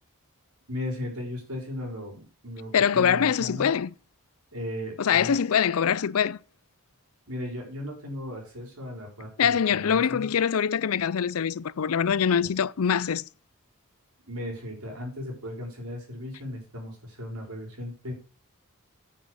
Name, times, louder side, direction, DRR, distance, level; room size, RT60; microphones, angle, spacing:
voice 1, 0.7-3.7 4.5-5.4 7.3-10.3 14.3-18.1, left 1 dB, 75° right, 4.8 m, -36 dB
voice 2, 2.7-3.9 5.0-6.4 9.4-13.2, left 7 dB, 70° left, 0.5 m, -24 dB
9.9 x 6.2 x 6.4 m
head